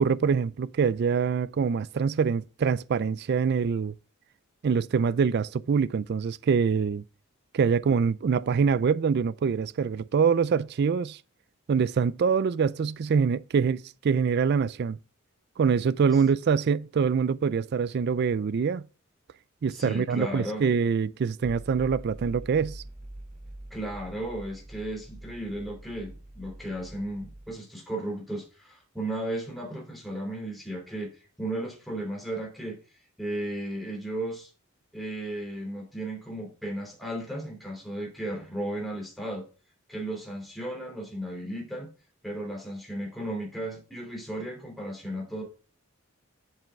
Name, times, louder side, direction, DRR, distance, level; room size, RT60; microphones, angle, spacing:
voice 1, 0.0-3.9 4.6-7.0 7.5-11.2 11.7-15.0 15.6-18.8 19.6-22.8, right 6 dB, 55° right, 0.4 m, -25 dB
voice 2, 19.7-20.6 23.7-32.8 33.2-34.5 34.9-39.4 39.9-41.9 42.2-45.4, right 1 dB, ahead, 2.8 m, -35 dB
sound 1, 21.4-27.5, right 1 dB, 35° right, 2.6 m, -44 dB
7.6 x 7.6 x 3.5 m
head